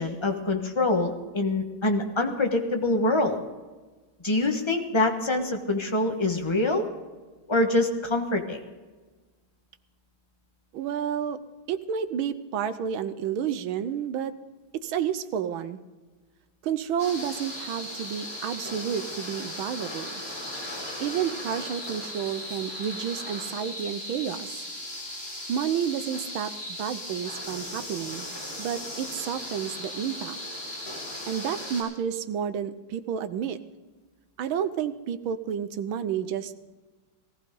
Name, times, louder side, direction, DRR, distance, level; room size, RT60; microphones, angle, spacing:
voice 1, 0.0-3.4 4.2-6.9 7.5-8.6, left 2 dB, 15° left, 3 dB, 1.1 m, -25 dB
voice 2, 10.7-11.4 11.7-14.3 14.7-15.8 16.6-20.2 21.0-24.7 25.5-28.3 28.6-30.4 31.3-33.6 34.4-36.7, right 8 dB, 75° right, 11 dB, 1.6 m, -30 dB
sound 1, 17.0-31.8, left 1 dB, 40° left, 5.6 m, -37 dB
19.5 x 15.0 x 3.8 m, 1.3 s
omnidirectional pair, 2.3 m